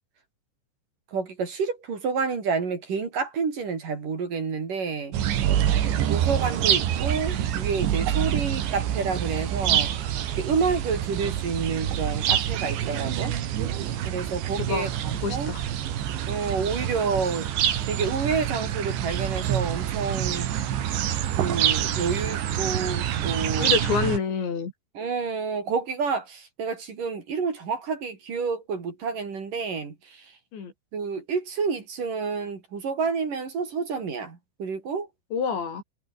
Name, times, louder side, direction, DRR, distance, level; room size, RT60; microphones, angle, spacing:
voice 1, 1.1-5.2 6.0-9.9 10.3-13.4 14.1-15.5 16.3-17.5 17.9-20.5 21.4-23.8 25.0-30.3 30.9-35.1, right 5 dB, 50° right, 5.3 m, -29 dB
sound 1, 5.1-24.2, right 10 dB, 80° right, 4.6 m, -26 dB
voice 2, 14.6-14.9 15.2-15.6 23.6-24.7 30.5-30.7 35.3-35.8, left 6 dB, 75° left, 7.4 m, -28 dB
omnidirectional pair, 5.2 m